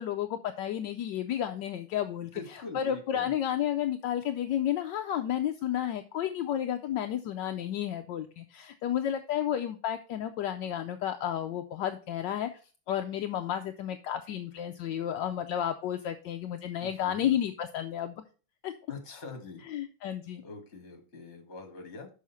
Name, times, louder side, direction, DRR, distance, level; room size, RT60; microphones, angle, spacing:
voice 1, 0.0-12.5 12.9-18.2 18.6-18.7 19.7-20.4, left 10 dB, 75° left, 6 dB, 1.2 m, -32 dB
voice 2, 2.2-3.3 16.8-17.3 18.9-19.6 20.4-22.1, left 3 dB, 40° left, 4 dB, 1.7 m, -44 dB
6.2 x 5.6 x 5.5 m, 0.36 s
omnidirectional pair, 2.1 m